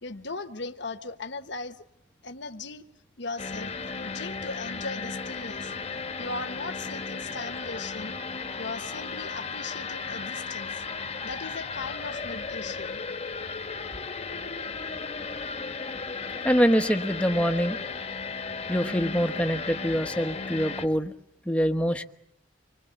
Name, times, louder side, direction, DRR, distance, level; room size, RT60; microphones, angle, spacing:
voice 1, 0.0-1.8 2.2-2.8 3.2-5.7 6.2-8.2 8.6-10.8 11.2-13.0, left 3 dB, 60° left, 1.3 m, -38 dB
sound 1, 3.4-20.9, left 4 dB, 30° left, 1.3 m, -35 dB
voice 2, 16.4-17.8 18.7-21.1 21.4-22.0, equal, 5° left, 1.1 m, -24 dB
26.5 x 21.5 x 8.2 m
head